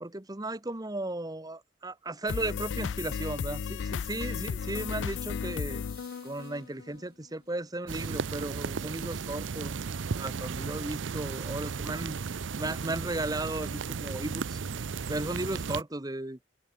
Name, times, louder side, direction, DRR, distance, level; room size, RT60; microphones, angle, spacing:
voice 1, 0.0-5.8 6.2-9.8 10.2-12.2 12.6-14.6 15.1-16.4, right 2 dB, 20° right, 1.2 m, -35 dB
sound 1, 2.3-7.0, left 6 dB, 80° left, 0.4 m, -35 dB
sound 2, 5.7-9.6 10.8-10.9, right 9 dB, 55° right, 4.8 m, -64 dB
sound 3, 7.9-15.8, right 5 dB, 90° right, 0.6 m, -35 dB
open air
head